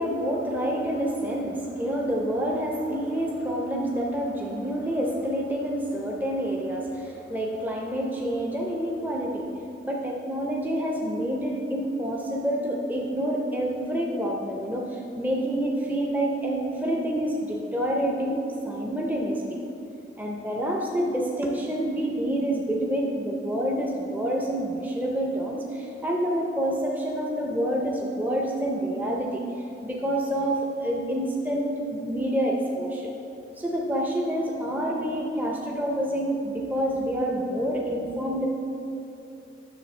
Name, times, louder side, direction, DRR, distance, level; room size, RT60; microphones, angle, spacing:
voice 1, 0.0-9.5 9.8-18.4 18.6-19.6 20.2-29.4 29.8-33.1 33.6-38.5, right 1 dB, 10° right, -1 dB, 0.5 m, -28 dB
9.7 x 6.7 x 3.2 m, 2.8 s
head